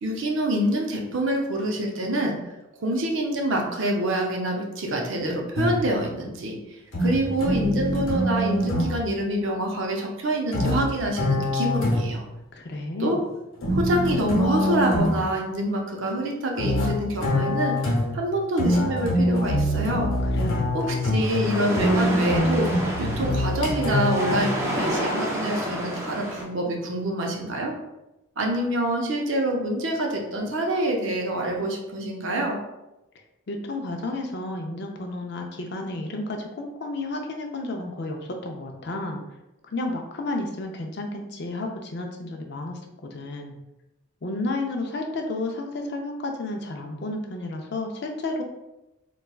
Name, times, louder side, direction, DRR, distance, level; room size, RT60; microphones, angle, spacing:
voice 1, 0.0-2.4 2.8-12.2 13.0-13.2 13.7-17.8 18.1-20.1 20.7-22.7 23.0-27.7 28.4-32.6, right 1 dB, 60° right, 1 dB, 0.6 m, -26 dB
sound 1, 5.6-6.0 6.9-9.0 10.5-12.3 13.6-15.3 16.6-24.4, left 1 dB, 75° left, 1.0 m, -24 dB
voice 2, 12.5-13.2 20.3-21.1 33.5-39.2 39.7-43.6 44.2-48.4, left 2 dB, 50° left, 2 dB, 0.4 m, -32 dB
sound 2, 21.2-26.4, equal, 10° right, 0.3 m, -29 dB
4.0 x 2.2 x 2.3 m, 0.94 s
head